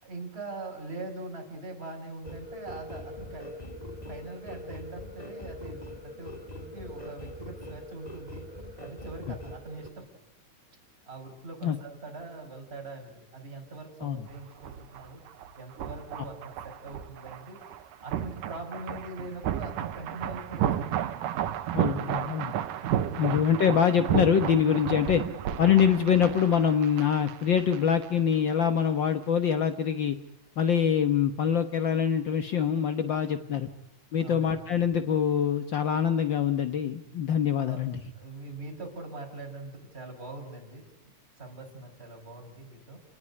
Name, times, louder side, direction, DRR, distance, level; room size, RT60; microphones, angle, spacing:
voice 1, 0.0-8.5 8.8-10.1 11.1-15.2 15.6-17.6 18.0-20.9 33.3-33.7 34.2-34.6 37.6-37.8 38.2-43.0, right 2 dB, 15° right, 2 dB, 5.4 m, -43 dB
sound 1, 2.2-9.9, left 1 dB, 15° left, 2.7 m, -42 dB
sound 2, 14.3-28.1 28.3-28.5, right 10 dB, 85° right, 2.8 m, -33 dB
voice 2, 21.7-22.5 23.2-25.2 25.6-30.2 30.6-33.7 34.1-38.0, left 8 dB, 65° left, 8 dB, 1.2 m, -24 dB
29.0 x 19.5 x 9.9 m, 0.90 s
omnidirectional pair, 3.7 m